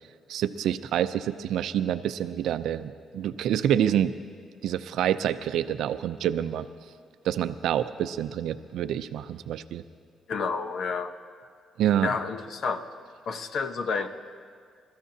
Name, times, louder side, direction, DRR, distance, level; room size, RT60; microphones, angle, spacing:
voice 1, 0.3-4.1 4.6-6.7 7.2-9.8 11.8-12.1, right 10 dB, 80° right, 12 dB, 0.5 m, -27 dB
voice 2, 10.3-11.1 12.0-12.8 13.3-14.1, left 5 dB, 65° left, 9 dB, 0.8 m, -30 dB
27.5 x 14.0 x 2.8 m, 2.1 s
cardioid pair, 90°, 0 cm